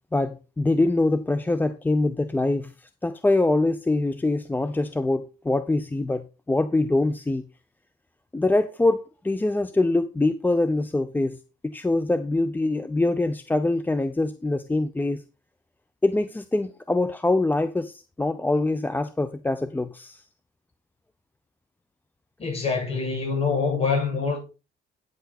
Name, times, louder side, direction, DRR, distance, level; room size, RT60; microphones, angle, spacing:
voice 1, 0.1-7.5 8.3-11.4 11.6-15.2 16.0-20.2, left 2 dB, 10° left, 0.6 m, -24 dB
voice 2, 22.4-24.4, left 5 dB, 35° left, 7.2 m, -25 dB
9.3 x 7.9 x 4.2 m
cardioid pair, 110°, 17 cm